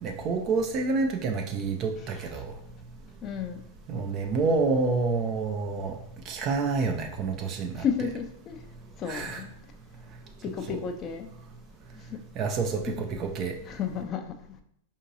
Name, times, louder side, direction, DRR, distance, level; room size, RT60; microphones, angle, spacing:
voice 1, 0.0-2.5 3.9-6.0 6.3-7.8 9.1-9.4 10.7-10.8 12.4-13.6, right 4 dB, 40° right, 3 dB, 0.4 m, -28 dB
voice 2, 3.2-3.6 7.8-8.6 9.0-9.5 10.4-11.3 12.1-12.2 12.9-13.0 13.7-14.4, left 7 dB, 35° left, 6 dB, 0.4 m, -32 dB
4.5 x 2.7 x 2.6 m, 0.73 s
figure-of-eight pair, 95°, 0 cm